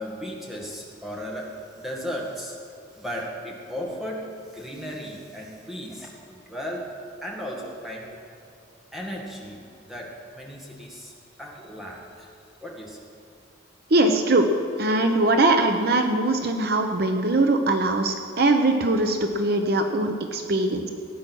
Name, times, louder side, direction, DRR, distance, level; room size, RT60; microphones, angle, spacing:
voice 1, 0.0-2.6 3.0-6.9 7.2-8.1 8.9-9.6 9.9-11.1 11.4-12.3 12.6-13.1, equal, ahead, -3 dB, 2.0 m, -35 dB
voice 2, 13.9-14.5 14.8-20.9, right 2 dB, 50° right, 5 dB, 0.8 m, -21 dB
17.5 x 9.3 x 6.2 m, 2.6 s
head